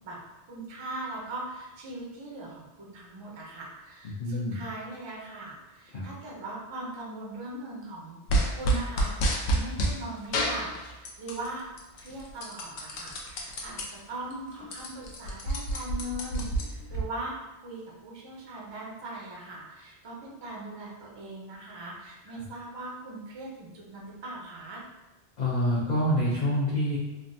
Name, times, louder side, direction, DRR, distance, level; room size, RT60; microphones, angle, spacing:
voice 1, 0.5-8.2 8.5-11.7 12.0-24.8, right 2 dB, 40° right, -3 dB, 0.4 m, -40 dB
voice 2, 4.0-4.6 5.9-6.0 25.4-27.0, equal, 55° left, -6 dB, 0.5 m, -26 dB
sound 1, 8.3-10.0 10.3-11.5 11.8-13.8 14.3-14.4 14.6-17.0, right 1 dB, 75° left, 0.8 m, -28 dB
3.3 x 2.1 x 2.5 m, 1.0 s
omnidirectional pair, 1.2 m